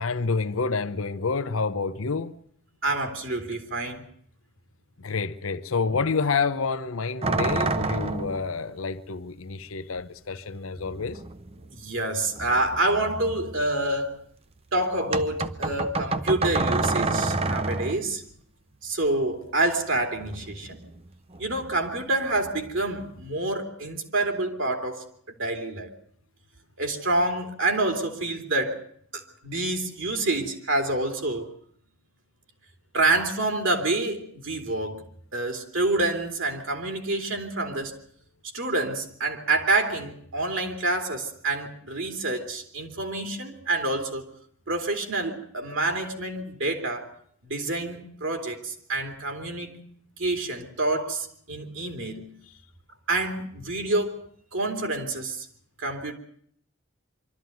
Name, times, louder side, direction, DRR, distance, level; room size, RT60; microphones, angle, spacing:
voice 1, 0.0-2.3 5.0-11.2, left 4 dB, 90° left, 0.8 m, -28 dB
voice 2, 2.8-4.0 11.7-14.1 14.7-18.2 18.8-20.8 21.4-25.0 25.4-25.9 26.8-28.8 29.1-31.5 32.9-35.0 35.3-37.9 38.5-44.2 44.7-47.1 47.4-49.8 50.2-52.4 53.1-54.1 54.5-55.4 55.8-56.1, right 2 dB, 65° right, 2.9 m, -27 dB
sound 1, 7.2-8.5 10.0-10.1 10.8-12.0 12.3-13.8 15.1-18.1 20.2-21.1 21.3-21.8 22.2-23.3, right 3 dB, 30° right, 0.8 m, -29 dB
24.5 x 13.0 x 9.2 m
head